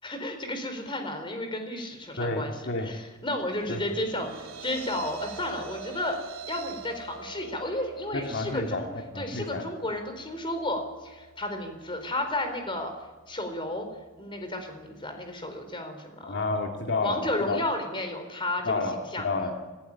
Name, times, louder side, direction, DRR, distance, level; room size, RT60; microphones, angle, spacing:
voice 1, 0.0-4.3 4.6-6.2 6.5-8.9 9.2-12.9 13.3-13.9 14.2-16.3 17.0-18.7 19.1-19.2, left 1 dB, 25° left, 6 dB, 4.3 m, -32 dB
voice 2, 2.2-2.9 3.7-3.8 8.1-9.7 16.2-17.6 18.6-19.5, left 3 dB, 60° left, 2 dB, 2.3 m, -30 dB
sound 1, 3.3-15.7, right 5 dB, 70° right, 2.8 m, -47 dB
26.5 x 15.0 x 9.9 m, 1.2 s
head